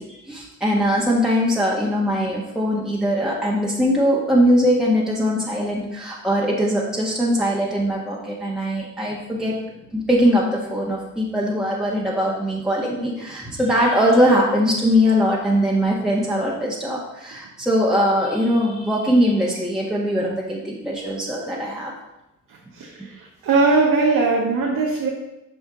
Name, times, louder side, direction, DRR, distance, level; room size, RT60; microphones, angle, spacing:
voice 1, 0.0-9.6 9.9-21.9, equal, ahead, -5 dB, 1.5 m, -21 dB
voice 2, 22.7-25.1, right 3 dB, 50° right, -1 dB, 1.2 m, -20 dB
7.2 x 6.2 x 3.8 m, 0.92 s
figure-of-eight pair, 45°, 40 cm